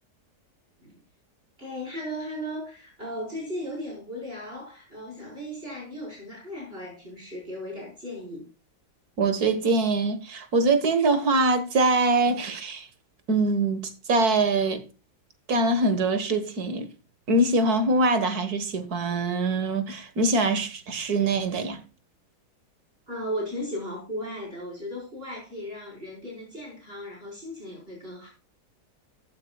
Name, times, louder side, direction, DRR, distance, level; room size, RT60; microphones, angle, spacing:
voice 1, 1.6-8.5 23.1-28.3, equal, 35° right, 5.4 m, -36 dB
voice 2, 9.2-12.9 13.3-14.8 15.5-16.9 17.3-21.8, right 2 dB, 70° right, 2.1 m, -23 dB
15.0 x 9.1 x 2.4 m
omnidirectional pair, 1.7 m